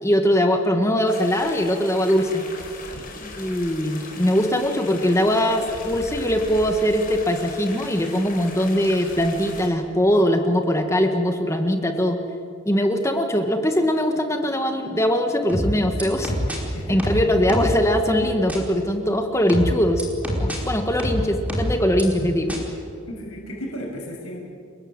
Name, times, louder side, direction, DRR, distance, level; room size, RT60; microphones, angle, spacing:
voice 1, 0.0-2.4 3.2-12.2 12.6-16.3 16.9-20.1 20.4-22.6, equal, 15° left, 5 dB, 1.7 m, -21 dB
sound 1, 1.1-9.7, left 3 dB, 40° left, 4.8 m, -38 dB
voice 2, 2.8-3.1 16.7-17.0 20.5-20.7 23.1-24.4, equal, 85° left, -1 dB, 6.7 m, -35 dB
sound 2, 15.5-16.6 17.0-17.8 18.5-18.6 19.5-20.6 21.0-22.0 22.5-22.6, equal, 5° right, 4.8 m, -25 dB
29.5 x 21.0 x 9.0 m, 2.3 s
head